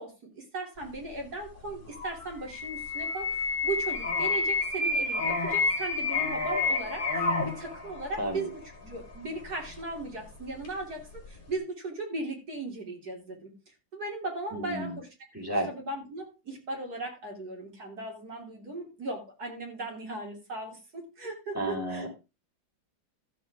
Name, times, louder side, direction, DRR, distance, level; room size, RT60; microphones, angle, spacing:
voice 1, 0.0-15.1 15.7-22.1, right 2 dB, 50° right, 0 dB, 3.7 m, -37 dB
sound 1, 1.7-10.8 11.2-11.5, left 3 dB, 25° left, 2.7 m, -30 dB
voice 2, 14.5-15.0 15.3-15.7 21.5-22.1, right 1 dB, 5° right, -2 dB, 4.7 m, -31 dB
13.5 x 7.6 x 3.6 m, 0.29 s
omnidirectional pair, 2.1 m